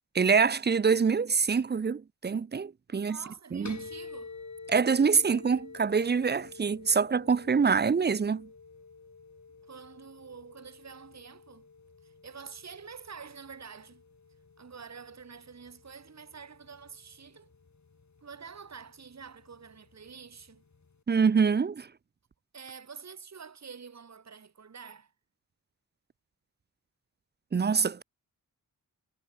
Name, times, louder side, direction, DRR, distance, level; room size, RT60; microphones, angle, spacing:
voice 1, 0.2-3.2 3.5-3.8 4.7-8.5 21.1-21.9 27.5-28.0, right 5 dB, 30° right, 0.5 m, -25 dB
voice 2, 2.9-4.4 9.6-11.7 12.0-14.0 14.6-17.5 18.2-20.6 22.5-25.1, right 6 dB, 45° right, 1.5 m, -47 dB
sound 1, 3.7-21.0, left 4 dB, 50° left, 3.9 m, -50 dB
cardioid pair, 60°, 37 cm